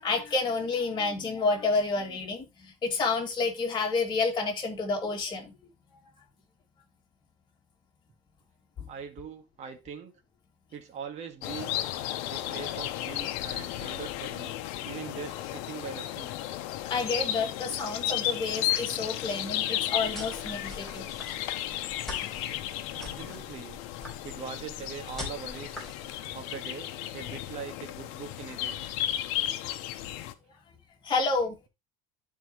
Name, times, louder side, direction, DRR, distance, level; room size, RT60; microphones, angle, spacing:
voice 1, 0.0-5.5 16.9-21.1 22.2-22.3 26.2-26.3 31.0-31.5, left 3 dB, 30° left, 2.5 m, -29 dB
voice 2, 8.9-10.1 10.7-11.8 12.3-14.6 14.8-16.3 22.9-23.8 24.2-25.8 26.3-28.8, right 7 dB, 45° right, 1.8 m, -42 dB
sound 1, 11.4-30.3, left 13 dB, 80° left, 0.9 m, -34 dB
sound 2, 19.9-26.1, left 2 dB, ahead, 4.1 m, -44 dB
12.0 x 4.6 x 3.1 m
cardioid pair, 130°, 16 cm